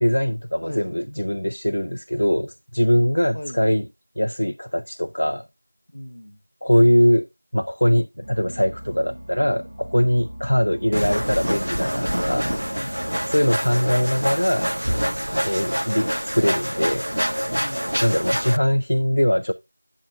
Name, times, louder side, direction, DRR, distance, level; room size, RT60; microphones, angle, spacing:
voice 1, 0.0-3.9 4.2-5.5 6.6-7.3 7.5-12.5 13.3-14.7 15.4-17.1 18.0-19.5, equal, 50° left, 0.4 m, -21 dB
voice 2, 3.3-3.7 5.9-6.4 12.7-13.3 17.5-18.4, left 1 dB, 30° left, 1.1 m, -38 dB
sound 1, 8.2-13.5, right 1 dB, 10° right, 1.2 m, -39 dB
sound 2, 10.9-18.6, equal, 70° right, 0.5 m, -26 dB
8.7 x 7.5 x 2.4 m
figure-of-eight pair, 180°, 0 cm